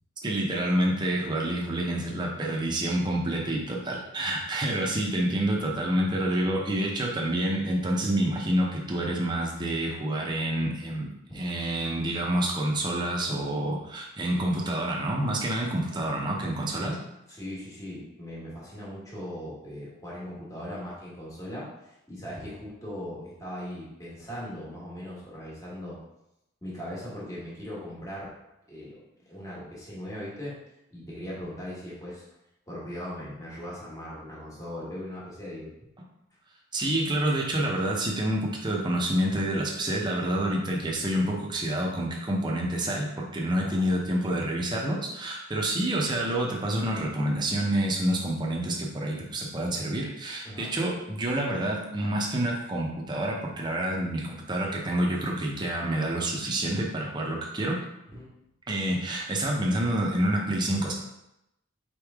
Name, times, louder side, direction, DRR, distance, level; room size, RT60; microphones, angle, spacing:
voice 1, 0.2-17.0 36.7-57.8 58.7-60.9, right 1 dB, 20° right, -2 dB, 0.7 m, -28 dB
voice 2, 17.3-26.0 26.6-28.3 28.7-29.0 29.3-30.6 30.9-32.2 32.7-35.7 40.2-40.6 43.6-43.9 50.4-50.7 58.1-58.3, equal, 15° left, -6 dB, 1.3 m, -39 dB
4.4 x 3.3 x 3.5 m, 0.86 s
head